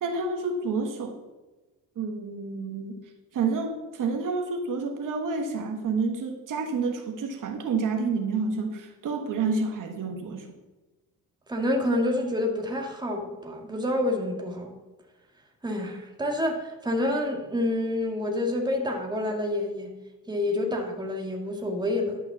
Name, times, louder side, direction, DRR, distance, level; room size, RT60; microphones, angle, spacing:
voice 1, 0.0-1.2 2.0-3.0 3.3-10.4, right 4 dB, 60° right, 3 dB, 1.5 m, -29 dB
voice 2, 11.5-14.7 15.6-19.9 20.3-22.2, left 1 dB, 10° right, 1 dB, 1.8 m, -28 dB
11.5 x 5.6 x 7.2 m, 1.1 s
cardioid pair, 120°, 36 cm